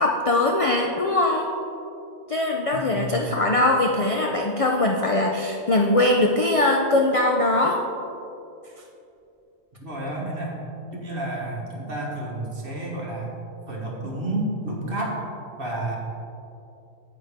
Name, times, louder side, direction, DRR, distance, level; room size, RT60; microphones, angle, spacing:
voice 1, 0.0-1.5 2.3-7.8, left 2 dB, 50° left, 1 dB, 0.4 m, -21 dB
voice 2, 2.7-3.3 9.7-10.6 10.9-13.3 13.7-15.2 15.6-16.0, right 1 dB, 45° right, -3 dB, 1.7 m, -30 dB
9.2 x 8.1 x 3.6 m, 2.7 s
omnidirectional pair, 1.3 m